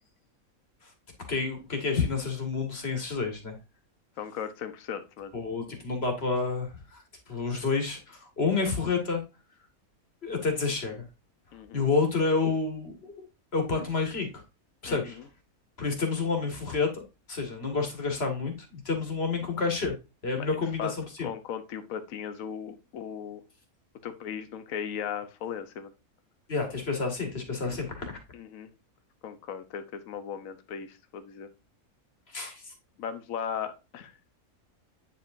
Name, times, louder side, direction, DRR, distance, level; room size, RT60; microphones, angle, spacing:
voice 1, 1.3-3.6 5.3-9.2 10.2-11.0 11.7-13.3 13.5-14.4 14.8-15.2 15.8-17.0 17.3-19.9 20.2-21.3 26.5-28.2 32.3-32.7, left 4 dB, 45° left, 4 dB, 2.2 m, -29 dB
voice 2, 4.2-5.3 11.5-11.9 14.8-15.2 20.4-20.9 21.2-23.4 24.0-25.9 28.3-28.7 29.2-31.5 33.0-34.1, left 8 dB, 70° left, 10 dB, 1.2 m, -37 dB
8.9 x 5.1 x 2.6 m, 0.27 s
omnidirectional pair, 1.5 m